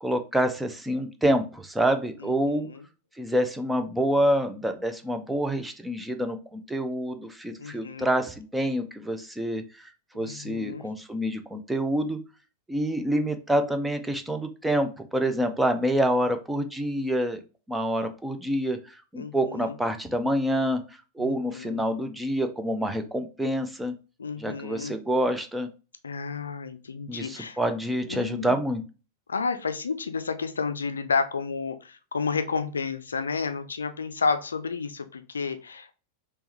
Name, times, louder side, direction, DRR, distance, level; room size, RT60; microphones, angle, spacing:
voice 1, 0.0-2.7 3.2-9.6 10.1-12.2 12.7-17.4 17.7-18.8 19.1-20.8 21.2-23.9 24.4-25.7 27.1-28.8, equal, 5° right, 7 dB, 0.6 m, -27 dB
voice 2, 2.5-2.8 7.6-8.1 10.1-10.9 19.2-19.7 21.2-21.8 24.2-25.0 26.0-27.6 28.1-28.6 29.3-35.9, left 5 dB, 70° left, 9 dB, 0.4 m, -31 dB
3.4 x 3.0 x 2.9 m, 0.32 s
figure-of-eight pair, 90°, 0 cm